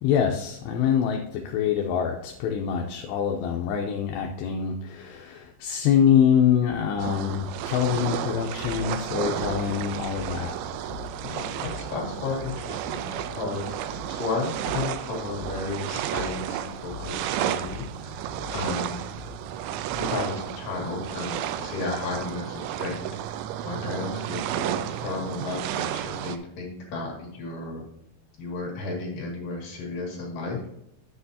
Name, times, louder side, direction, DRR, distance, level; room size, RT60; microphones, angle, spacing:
voice 1, 0.0-10.6, left 8 dB, 80° left, 2 dB, 2.5 m, -25 dB
sound 1, 7.0-26.4, right 11 dB, 85° right, 2.7 m, -32 dB
sound 2, 8.6-20.6, left 5 dB, 5° left, 2.5 m, -43 dB
voice 2, 11.2-18.3 18.5-19.0 19.9-23.1 23.6-27.8 28.4-30.6, left 3 dB, 55° left, -2 dB, 3.3 m, -33 dB
10.0 x 7.5 x 2.7 m, 0.83 s
omnidirectional pair, 5.5 m